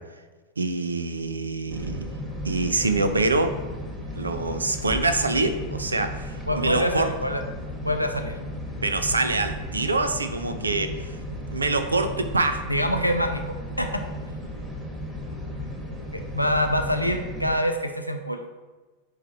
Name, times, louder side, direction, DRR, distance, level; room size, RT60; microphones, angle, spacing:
voice 1, 0.6-2.1 2.4-3.6 4.1-7.1 8.8-11.2 11.5-12.6, right 3 dB, 75° right, 9 dB, 0.6 m, -25 dB
sound 1, 1.7-17.5, equal, 10° right, 1.6 m, -34 dB
voice 2, 6.5-7.4 7.8-8.4 12.7-14.0 16.1-18.5, equal, 90° left, 5 dB, 0.6 m, -25 dB
9.6 x 3.2 x 4.5 m, 1.3 s
figure-of-eight pair, 90°, 0 cm